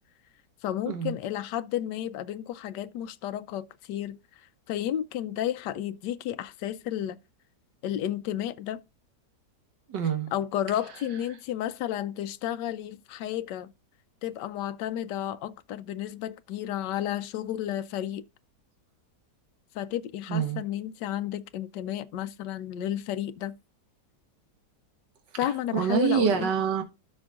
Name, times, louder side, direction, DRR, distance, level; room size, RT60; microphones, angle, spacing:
voice 1, 0.6-4.2 4.7-7.2 7.8-8.8 10.3-13.7 14.2-18.2 19.7-23.5 25.4-26.5, left 11 dB, 85° left, 1.3 m, -32 dB
voice 2, 9.9-10.3 20.3-20.6 25.7-26.8, right 8 dB, 80° right, 1.9 m, -26 dB
12.5 x 5.2 x 2.4 m
omnidirectional pair, 1.8 m